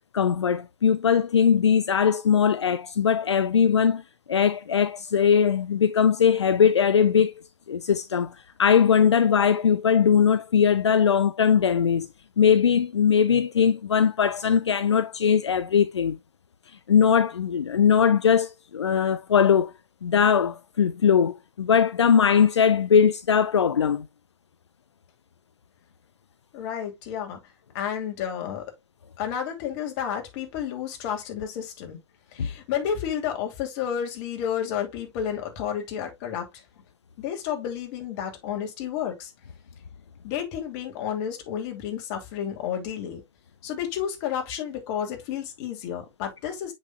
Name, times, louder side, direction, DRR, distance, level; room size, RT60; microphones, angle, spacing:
voice 1, 0.1-4.0 4.3-7.3 7.7-12.1 12.4-16.2 16.9-19.7 20.0-24.1 32.4-32.5, left 7 dB, 75° left, 0.5 m, -20 dB
voice 2, 26.5-27.4 27.7-28.6 29.2-32.0 32.3-36.5 37.2-39.3 40.2-43.2 43.6-46.7, left 9 dB, 40° left, 2.7 m, -31 dB
8.0 x 6.2 x 2.3 m
figure-of-eight pair, 105°, 15 cm